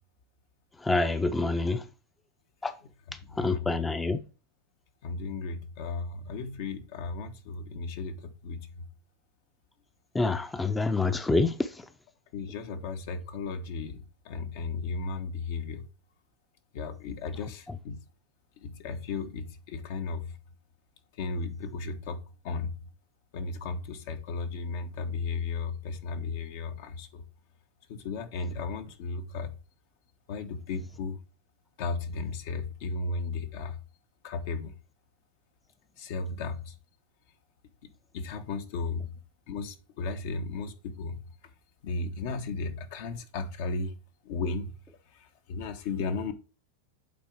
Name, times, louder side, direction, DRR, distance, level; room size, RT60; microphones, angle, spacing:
voice 1, 0.8-1.9 2.6-2.8 3.3-4.2 10.1-11.8 17.7-17.8, left 3 dB, 10° left, 0.6 m, -27 dB
voice 2, 5.0-8.7 12.3-15.8 16.7-18.0 18.6-20.4 21.2-22.7 23.3-27.2 27.9-29.5 30.3-31.2 31.8-33.8 34.2-34.8 36.0-36.7 38.1-39.1 39.5-41.2 41.8-43.9 44.2-44.7 45.5-46.3, left 4 dB, 60° left, 1.2 m, -35 dB
8.5 x 3.8 x 4.6 m
hypercardioid pair, 110°, 0 cm